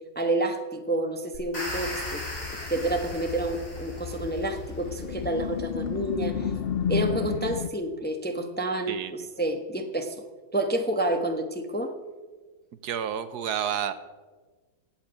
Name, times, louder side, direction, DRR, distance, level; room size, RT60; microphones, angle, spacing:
voice 1, 0.1-2.2 2.5-6.5 6.9-10.1 10.5-11.9, right 1 dB, 10° left, 5 dB, 0.8 m, -29 dB
sound 1, 1.3-4.5, left 1 dB, 50° left, 4.5 m, -38 dB
sound 2, 1.7-7.7, left 8 dB, 65° left, 0.5 m, -33 dB
voice 2, 8.9-9.3 12.8-13.9, right 9 dB, 70° right, 12 dB, 1.3 m, -30 dB
16.5 x 5.9 x 8.9 m, 1.3 s
omnidirectional pair, 1.8 m